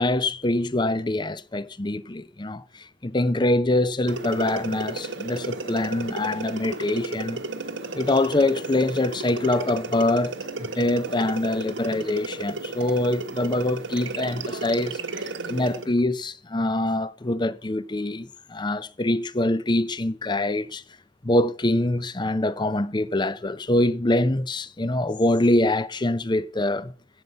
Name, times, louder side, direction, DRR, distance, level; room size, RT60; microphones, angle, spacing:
voice 1, 0.0-7.4 7.9-10.3 10.6-15.0 15.5-20.8 21.2-26.9, left 1 dB, 20° left, 0.6 m, -24 dB
sound 1, 4.1-15.9, right 3 dB, 55° right, 1.2 m, -33 dB
16.0 x 5.3 x 7.1 m
head